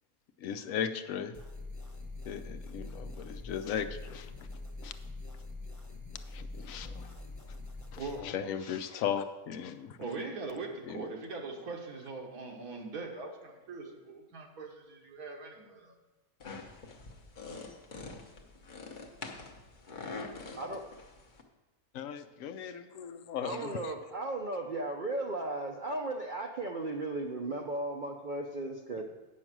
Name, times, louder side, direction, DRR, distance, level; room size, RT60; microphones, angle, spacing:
voice 1, 0.4-1.4 2.2-4.3 4.8-4.9 6.3-7.1 7.9-10.0 10.8-11.0 21.9-23.9, left 8 dB, 70° left, 11 dB, 1.0 m, -37 dB
sound 1, 1.3-8.2, left 2 dB, 15° left, 1.0 m, -44 dB
voice 2, 8.6-9.0 10.0-15.9 29.0-29.1, right 3 dB, 80° right, 1 dB, 1.7 m, -41 dB
sound 2, 16.4-21.4, left 3 dB, 40° left, 0.9 m, -45 dB
voice 3, 23.4-29.0, right 2 dB, 50° right, 1 dB, 0.6 m, -36 dB
8.9 x 6.3 x 6.0 m, 1.2 s
omnidirectional pair, 1.5 m